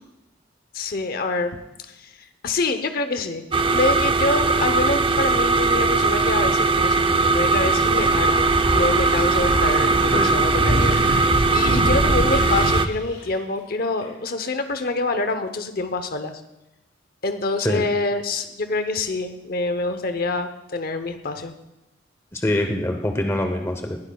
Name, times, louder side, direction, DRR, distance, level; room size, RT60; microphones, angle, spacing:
voice 1, 0.7-1.6 2.0-2.1 2.4-11.0 11.5-16.3 17.2-21.5, left 3 dB, 50° left, 9 dB, 0.8 m, -26 dB
sound 1, 3.5-12.9, right 3 dB, 25° right, 0.4 m, -20 dB
Thunder / Bicycle, 7.0-12.8, equal, 75° right, 3.3 m, -25 dB
sound 2, 9.8-14.3 15.0-15.2, left 3 dB, 70° left, 5.1 m, -41 dB
voice 2, 22.3-24.0, left 1 dB, 15° left, 4 dB, 0.8 m, -24 dB
19.5 x 12.0 x 2.3 m, 0.95 s
head